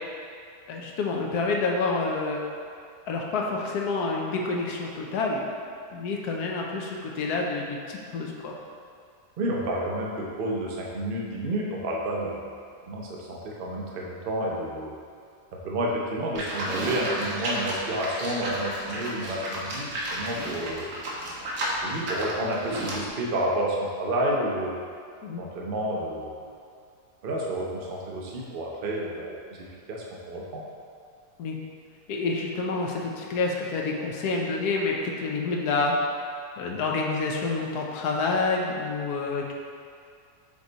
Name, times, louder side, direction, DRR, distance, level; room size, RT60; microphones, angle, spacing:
voice 1, 0.7-2.4 3.1-5.4 5.9-8.6 25.2-25.4 31.4-31.6 32.1-36.2 36.6-39.5, left 3 dB, 75° left, -1 dB, 1.3 m, -28 dB
voice 2, 9.4-12.5 12.9-14.9 15.6-20.9 21.8-24.8 25.4-26.4 27.2-29.6 29.9-30.6, right 1 dB, 45° right, -3 dB, 0.8 m, -30 dB
Livestock farm animals working animals, 16.4-23.1, right 1 dB, 65° right, 1.4 m, -32 dB
7.2 x 3.3 x 3.9 m, 2.3 s
omnidirectional pair, 1.8 m